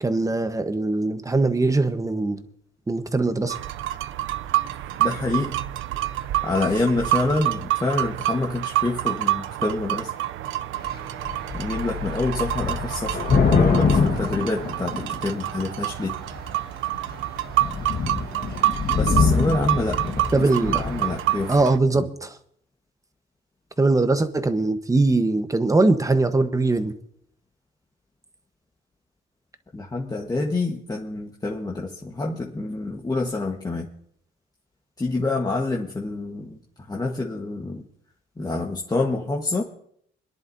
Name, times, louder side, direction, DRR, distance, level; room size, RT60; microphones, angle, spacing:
voice 1, 0.0-2.4 2.9-3.6 20.3-20.9 21.5-22.3 23.8-26.9, right 2 dB, 15° right, 9 dB, 1.1 m, -21 dB
sound 1, 3.5-21.8, right 14 dB, 80° right, 0.5 m, -28 dB
voice 2, 5.0-5.6 6.4-10.1 11.5-16.1 18.9-20.0 20.6-21.5 21.9-22.1 29.7-33.9 35.0-37.8 38.4-39.6, left 2 dB, 20° left, -1 dB, 1.4 m, -27 dB
Thunder / Rain, 10.8-11.0 11.2-15.4 16.1-16.5 17.0-17.1 17.4-21.1, left 5 dB, 50° left, 1.6 m, -24 dB
26.0 x 10.5 x 2.7 m, 0.67 s
cardioid pair, 90°, 20 cm